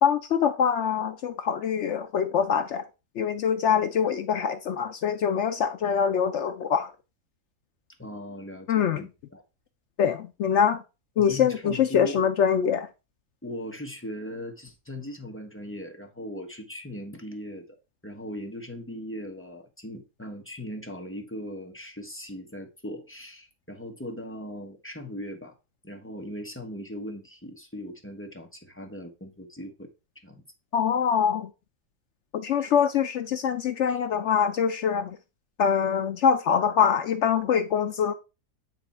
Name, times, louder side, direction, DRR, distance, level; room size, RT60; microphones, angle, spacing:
voice 1, 0.0-2.8 3.2-6.9 8.7-9.1 10.0-10.8 11.2-12.9 30.7-31.5 32.3-35.2 35.6-38.1, left 7 dB, 70° left, 0.7 m, -24 dB
voice 2, 8.0-9.4 11.2-12.2 13.4-17.7 18.0-25.6 25.8-29.9 30.2-30.4 32.6-32.7 33.9-34.0, equal, 10° left, 0.8 m, -39 dB
8.9 x 3.4 x 4.2 m
omnidirectional pair, 1.7 m